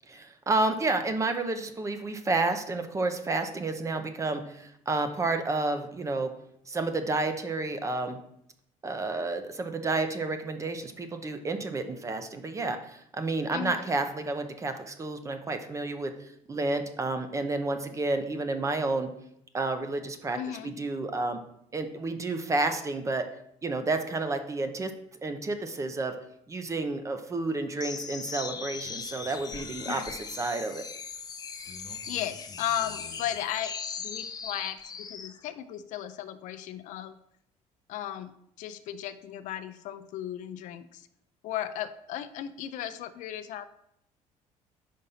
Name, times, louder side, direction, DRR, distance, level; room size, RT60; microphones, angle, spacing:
voice 1, 0.1-6.3 6.7-8.2 8.8-16.1 16.5-19.1 19.5-20.4 20.6-21.4 21.7-23.3 23.6-24.9 25.2-26.1 26.5-30.8, right 3 dB, 20° right, 8 dB, 0.7 m, -30 dB
voice 2, 13.5-13.8 20.3-20.7 29.9-30.1 31.9-33.7 34.0-37.1 37.9-38.3 38.6-41.1 41.4-43.7, left 11 dB, 70° left, 11 dB, 0.5 m, -35 dB
sound 1, 27.8-35.4, left 5 dB, 30° left, 0.7 m, -39 dB
5.2 x 4.1 x 5.6 m, 0.74 s
cardioid pair, 115°, 14 cm